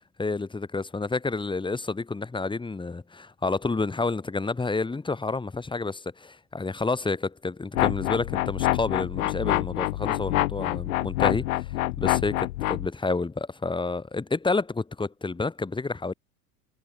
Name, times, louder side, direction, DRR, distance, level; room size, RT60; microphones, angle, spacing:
voice 1, 0.2-16.1, left 3 dB, 10° left, 3.0 m, -29 dB
sound 1, 7.7-12.9, left 18 dB, 55° left, 6.3 m, -26 dB
figure-of-eight pair, 85°, 47 cm